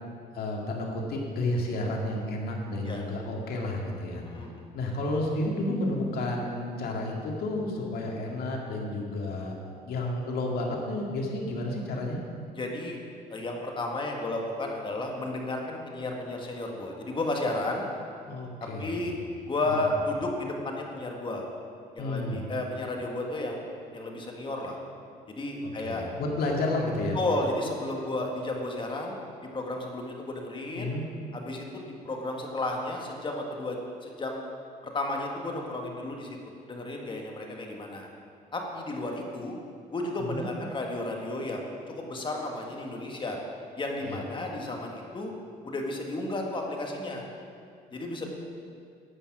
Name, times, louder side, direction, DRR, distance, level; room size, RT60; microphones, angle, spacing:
voice 1, 0.3-4.2 4.7-9.6 9.8-12.2 18.3-19.2 19.7-19.8 22.0-22.4 25.8-27.2 30.7-31.1 40.2-40.4 44.0-44.2 48.2-48.3, left 2 dB, 65° left, -1 dB, 2.2 m, -31 dB
voice 2, 4.2-4.6 12.6-13.0 13.3-17.9 18.6-19.1 19.4-21.4 21.9-24.8 25.3-26.1 27.1-29.2 29.5-30.9 31.3-34.4 34.8-38.1 38.5-39.6 39.9-43.4 43.8-45.3 45.6-47.2 47.9-48.3, left 2 dB, 30° left, 1 dB, 1.8 m, -33 dB
11.0 x 8.7 x 6.1 m, 2.3 s
cardioid pair, 110°, 17 cm